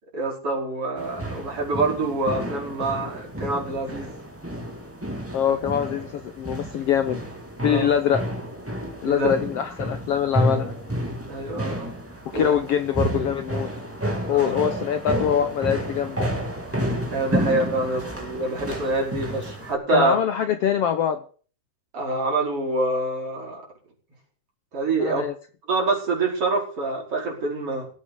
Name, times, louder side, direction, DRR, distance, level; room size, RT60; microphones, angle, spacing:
voice 1, 0.1-4.1 7.6-7.9 9.1-9.3 11.3-11.9 12.3-12.5 14.3-14.6 17.1-20.1 21.9-23.6 24.7-25.2 25.7-27.9, right 2 dB, 45° right, 0 dB, 5.7 m, -26 dB
sound 1, 1.0-19.7, right 1 dB, 5° right, 2.5 m, -30 dB
voice 2, 5.3-7.2 7.6-8.2 9.0-10.7 12.3-13.7 14.3-16.3 19.9-21.2 25.0-25.3, left 9 dB, 65° left, 9 dB, 1.6 m, -23 dB
17.5 x 8.4 x 6.7 m, 0.41 s
omnidirectional pair, 3.5 m